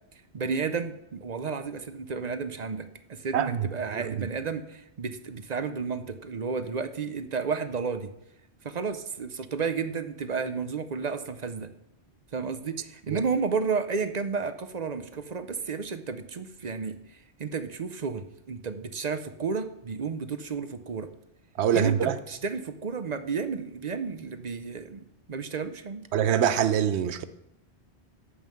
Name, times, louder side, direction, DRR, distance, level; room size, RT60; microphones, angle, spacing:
voice 1, 0.3-8.1 8.6-11.7 12.3-21.1 21.7-26.1, right 5 dB, 45° right, 0.7 m, -32 dB
voice 2, 3.3-4.3 13.1-13.2 21.6-22.2 26.1-27.2, right 9 dB, 75° right, 1.0 m, -25 dB
11.0 x 5.5 x 7.6 m
omnidirectional pair, 1.1 m